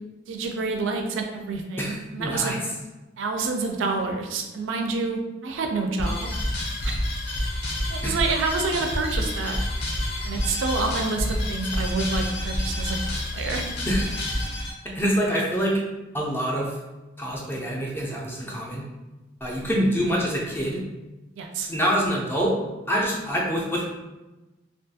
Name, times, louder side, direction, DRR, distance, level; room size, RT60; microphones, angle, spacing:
voice 1, 0.3-2.5 3.2-6.3 6.8-7.0 7.9-9.6 10.2-13.6 21.4-21.7, right 3 dB, 85° right, 3 dB, 0.4 m, -28 dB
voice 2, 1.8-2.6 8.0-8.2 13.9-14.2 14.8-15.8 16.1-16.7 17.2-18.9 19.4-20.8 21.6-22.5 22.9-23.9, equal, 10° left, -3 dB, 0.4 m, -25 dB
sound 1, 6.0-14.7, left 1 dB, 55° left, 0.6 m, -28 dB
2.4 x 2.3 x 2.7 m, 1.1 s
head